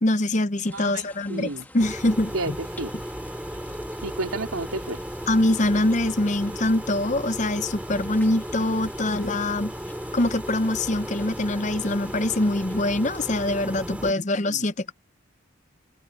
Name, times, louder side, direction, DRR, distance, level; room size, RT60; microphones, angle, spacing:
voice 1, 0.0-2.6 5.3-9.7 10.1-14.9, left 1 dB, 35° left, 0.7 m, -24 dB
sound 1, 0.6-13.3, left 2 dB, 10° left, 2.4 m, -50 dB
voice 2, 0.7-1.0 1.3-1.7 2.3-2.9 4.0-5.0 14.5-14.6, right 2 dB, 85° right, 3.0 m, -31 dB
sound 2, 1.8-14.1, equal, 5° right, 3.0 m, -35 dB
head